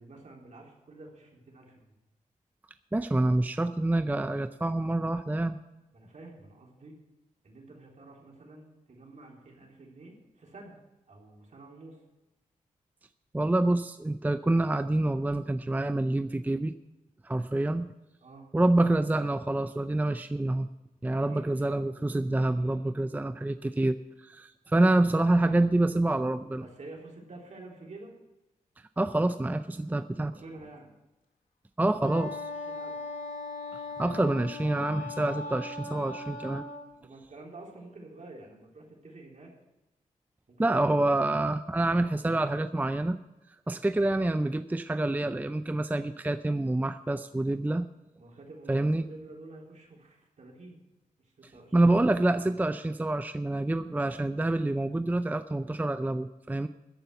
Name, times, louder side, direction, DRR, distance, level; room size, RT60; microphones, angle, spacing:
voice 1, 0.0-1.9 5.9-7.0 7.4-10.8 11.1-12.0 18.2-18.5 21.1-21.8 26.6-28.1 30.3-30.9 32.5-33.1 37.0-39.5 40.5-41.3 48.2-50.8 51.2-51.9, right 2 dB, 60° right, -1 dB, 3.7 m, -49 dB
voice 2, 2.9-5.6 13.3-16.7 17.2-17.9 18.5-20.7 21.0-26.6 29.0-30.3 31.8-32.4 34.0-36.6 40.6-43.2 43.7-47.9 48.7-49.0 51.7-56.7, right 2 dB, 10° right, 11 dB, 0.5 m, -27 dB
Wind instrument woodwind instrument, 32.0-36.9, left 3 dB, 80° left, 2.0 m, -39 dB
14.0 x 5.7 x 9.2 m, 1.0 s
cardioid pair, 70°, 14 cm